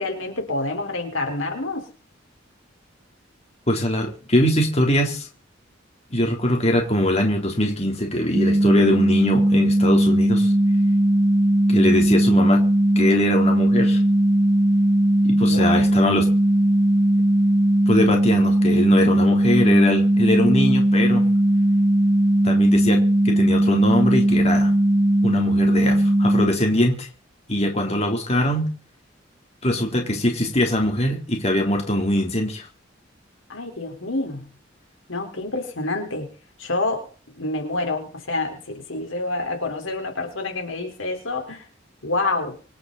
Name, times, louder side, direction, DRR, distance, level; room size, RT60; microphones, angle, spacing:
voice 1, 0.0-1.9 15.5-15.8 27.9-28.0 33.5-34.4 35.1-36.3 36.6-37.1 37.4-41.6 42.0-42.6, left 2 dB, 85° left, 3 dB, 4.5 m, -27 dB
voice 2, 3.7-5.3 6.1-10.5 11.7-12.7 13.0-14.0 15.2-16.3 17.9-21.2 22.4-24.7 25.2-27.1 27.5-28.7 29.6-32.7, left 1 dB, 35° left, 1 dB, 3.5 m, -22 dB
sound 1, 8.3-26.5, right 1 dB, 25° right, 0.7 m, -18 dB
26.0 x 9.9 x 4.2 m, 0.41 s
head